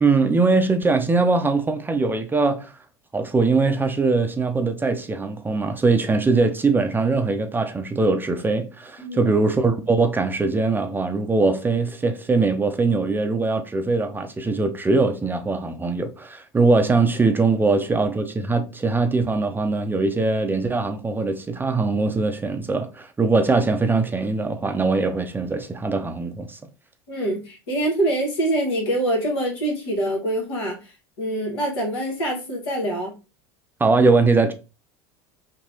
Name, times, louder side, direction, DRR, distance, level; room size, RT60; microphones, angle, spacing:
voice 1, 0.0-2.7 3.1-26.6 33.8-34.5, right 3 dB, 15° right, 0.4 m, -21 dB
voice 2, 9.0-9.3 27.1-30.9 31.2-33.1, right 1 dB, 80° left, 1.5 m, -25 dB
2.9 x 2.6 x 2.7 m
hypercardioid pair, 90°, 13 cm